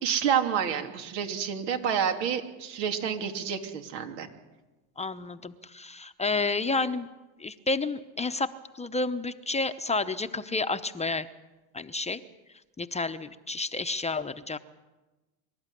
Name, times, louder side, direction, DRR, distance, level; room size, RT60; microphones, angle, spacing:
voice 1, 0.0-4.3, right 8 dB, 80° right, 5 dB, 3.0 m, -29 dB
voice 2, 5.0-7.1 7.4-11.3 11.7-12.2 12.8-14.6, left 3 dB, 15° left, 9 dB, 0.8 m, -30 dB
25.0 x 13.0 x 9.9 m, 1.1 s
supercardioid pair, 105°, 49 cm